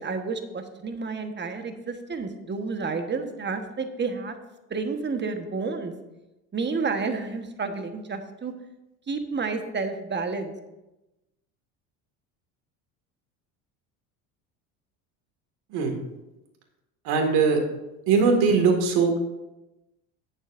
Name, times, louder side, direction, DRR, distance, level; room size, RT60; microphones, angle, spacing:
voice 1, 0.0-4.3 4.7-5.9 6.5-8.5 9.1-10.5, right 4 dB, 25° right, 6 dB, 1.4 m, -30 dB
voice 2, 17.0-17.6 18.1-19.2, right 5 dB, 70° right, 2 dB, 2.3 m, -20 dB
18.5 x 7.2 x 2.7 m, 0.98 s
supercardioid pair, 85°, 40 cm